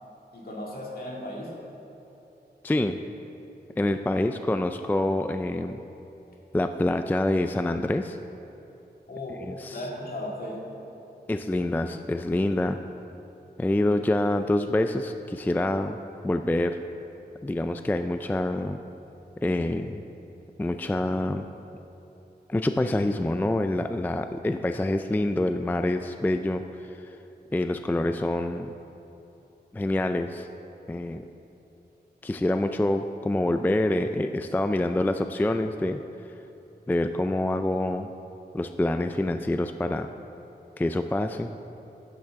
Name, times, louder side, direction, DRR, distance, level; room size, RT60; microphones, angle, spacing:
voice 1, 0.3-1.5 9.1-10.7, left 1 dB, 60° left, -3 dB, 2.1 m, -36 dB
voice 2, 2.6-3.0 3.8-5.8 6.5-8.2 9.5-9.8 11.3-12.8 13.6-16.0 16.2-16.8 17.4-18.8 19.4-20.0 20.6-21.4 22.5-27.2 27.5-28.7 29.7-30.5 30.9-31.2 32.2-36.3 36.9-38.1 38.5-40.1 40.8-41.5, left 1 dB, 10° left, 8 dB, 0.3 m, -26 dB
13.0 x 10.5 x 3.6 m, 3.0 s
wide cardioid pair, 110°, 18 cm